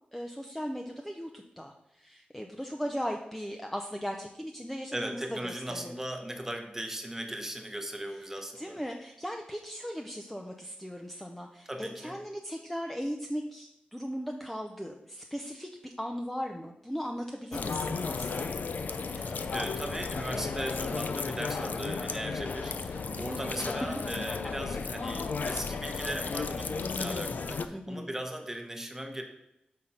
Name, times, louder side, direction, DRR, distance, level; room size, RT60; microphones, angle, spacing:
voice 1, 0.1-5.9 8.1-8.2 8.5-18.5 23.1-23.7 27.7-28.1, equal, 5° left, 3 dB, 0.4 m, -38 dB
voice 2, 4.9-8.8 11.7-12.2 19.2-29.2, right 1 dB, 15° right, 4 dB, 0.8 m, -38 dB
sound 1, 17.5-27.7, left 4 dB, 65° left, 0.4 m, -34 dB
5.8 x 3.8 x 5.5 m, 0.86 s
wide cardioid pair, 115°, 3 cm